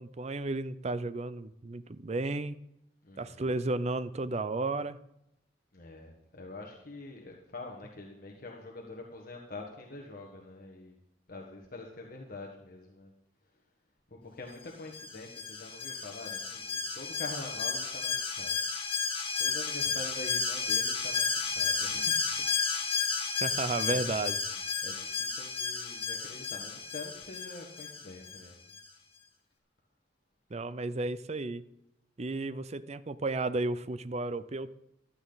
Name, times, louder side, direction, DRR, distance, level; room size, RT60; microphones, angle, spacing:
voice 1, 0.0-2.6 3.2-5.0 23.4-24.4 30.5-31.6 32.2-34.7, right 2 dB, 35° right, 14 dB, 0.5 m, -33 dB
voice 2, 3.0-3.4 5.7-11.0 11.3-13.1 14.1-18.5 19.4-22.4 22.8-23.2 23.8-24.1 24.4-24.5 24.8-28.7, left 2 dB, 50° left, 0 dB, 1.6 m, -45 dB
Alarm, 14.9-28.4 28.7-28.8, left 5 dB, 30° left, 1.8 m, -32 dB
15.5 x 12.5 x 4.0 m, 0.83 s
head